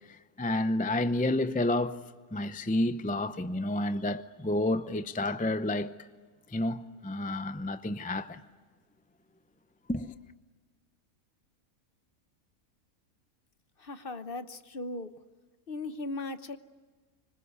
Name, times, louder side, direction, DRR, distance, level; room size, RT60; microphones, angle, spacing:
voice 1, 0.1-2.0 2.3-5.9 6.5-8.4 9.9-10.1, left 1 dB, 10° left, 0.3 m, -30 dB
voice 2, 13.8-15.1 15.7-16.6, left 2 dB, 45° left, 1.1 m, -37 dB
25.5 x 25.5 x 8.4 m
omnidirectional pair, 1.5 m